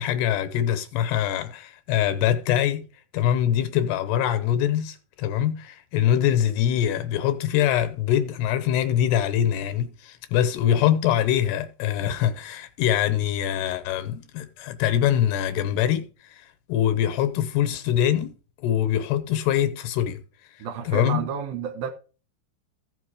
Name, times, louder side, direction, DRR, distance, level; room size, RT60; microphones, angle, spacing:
voice 1, 0.0-2.8 3.1-18.4 18.6-20.2 20.9-21.2, left 10 dB, 75° left, 2.8 m, -23 dB
voice 2, 20.6-21.9, right 7 dB, 70° right, 2.5 m, -30 dB
15.0 x 5.6 x 4.8 m
omnidirectional pair, 5.1 m